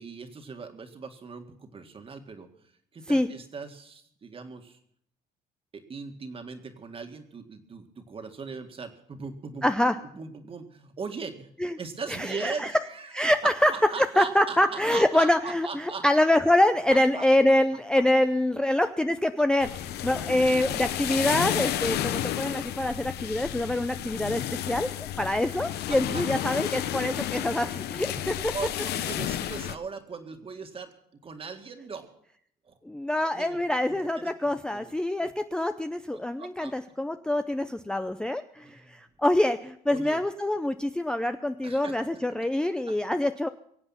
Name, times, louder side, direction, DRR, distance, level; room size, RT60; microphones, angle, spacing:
voice 1, 0.0-2.5 2.9-4.8 5.7-11.5 11.8-16.1 16.9-17.2 25.2-25.5 25.9-26.2 28.2-31.0 31.2-32.2 32.6-32.8 33.3-33.6 33.9-34.9 35.2-35.3 36.1-36.7 38.6-39.0 39.9-40.2 41.6-42.2, right 5 dB, 35° right, 6 dB, 1.9 m, -40 dB
voice 2, 9.6-10.0 11.6-11.8 12.2-12.7 13.1-13.7 14.2-19.7 20.0-28.5 32.9-43.5, left 1 dB, 5° left, 9 dB, 0.5 m, -25 dB
sound 1, 19.6-29.7, left 12 dB, 75° left, 0.8 m, -32 dB
23.5 x 8.0 x 5.7 m, 0.68 s
cardioid pair, 110°, 17 cm